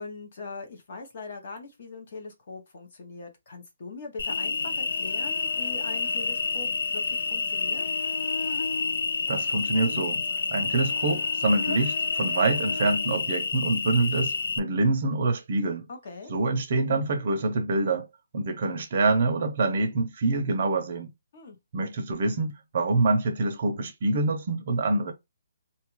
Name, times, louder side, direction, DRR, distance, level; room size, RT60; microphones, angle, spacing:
voice 1, 0.0-7.8 15.9-16.3 21.3-21.6, left 3 dB, 35° left, 0.7 m, -41 dB
Cricket, 4.2-14.6, left 4 dB, 55° left, 0.3 m, -29 dB
voice 2, 9.3-10.2 10.5-15.9 16.3-18.1 18.3-21.1 21.7-25.1, right 3 dB, 35° right, 0.6 m, -26 dB
2.8 x 2.3 x 3.0 m
hypercardioid pair, 180°, 0 cm